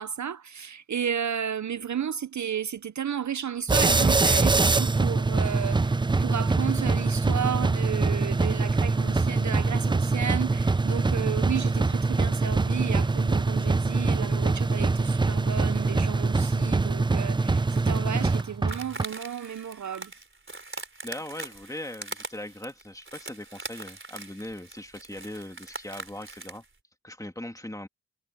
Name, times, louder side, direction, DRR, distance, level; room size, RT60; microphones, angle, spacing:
voice 1, 0.0-20.1, right 8 dB, 60° right, 0.5 m, -33 dB
sound 1, 3.7-19.0, right 3 dB, 15° right, 0.3 m, -24 dB
sound 2, 17.5-26.7, right 3 dB, 40° right, 4.3 m, -42 dB
voice 2, 20.7-26.6 27.0-27.9, left 1 dB, 10° left, 2.5 m, -40 dB
wide cardioid pair, 95°, 32 cm